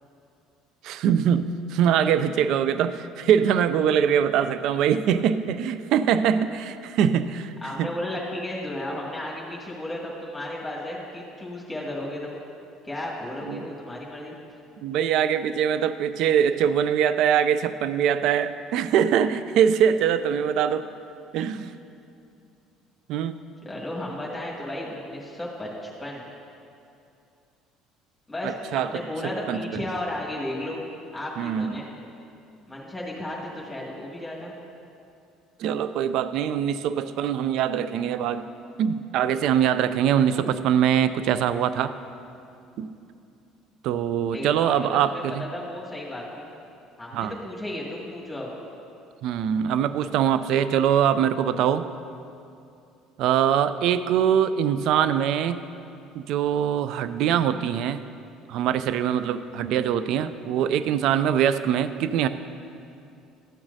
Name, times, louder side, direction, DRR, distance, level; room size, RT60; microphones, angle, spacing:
voice 1, 0.8-7.9 13.5-13.7 14.8-20.9 21.3-21.7 23.1-23.4 28.4-29.0 29.5-29.8 31.4-31.7 35.6-38.4 38.8-41.9 42.8-42.9 43.8-45.5 47.1-47.3 49.2-51.9 53.2-55.6 56.1-58.0 58.5-62.3, right 9 dB, 65° right, 13 dB, 0.3 m, -23 dB
voice 2, 7.6-12.4 12.8-14.3 23.6-26.3 28.3-30.9 31.1-31.9 32.7-34.5 44.3-45.2 45.5-46.5 47.0-48.5, left 1 dB, 10° left, -4 dB, 2.0 m, -34 dB
13.5 x 8.6 x 2.7 m, 2.6 s
hypercardioid pair, 65°, 0 cm